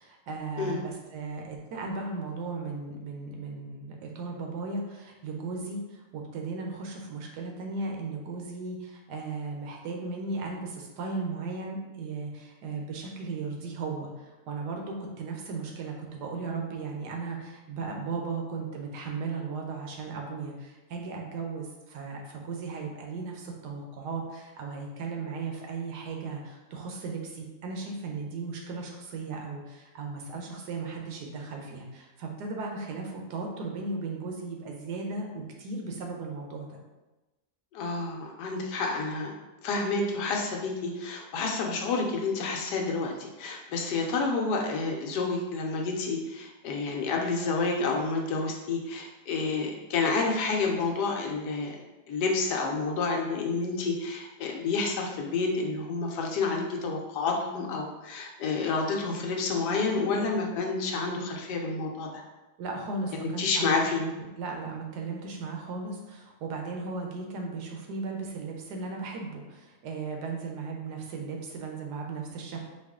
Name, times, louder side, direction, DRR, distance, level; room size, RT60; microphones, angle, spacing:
voice 1, 0.0-36.8 62.6-64.0 64.4-72.7, right 4 dB, 80° right, 1 dB, 1.3 m, -36 dB
voice 2, 37.7-39.3 39.6-51.8 52.1-62.2 63.1-64.0, left 4 dB, 85° left, 1 dB, 1.3 m, -29 dB
4.8 x 2.4 x 3.6 m, 1.1 s
omnidirectional pair, 1.7 m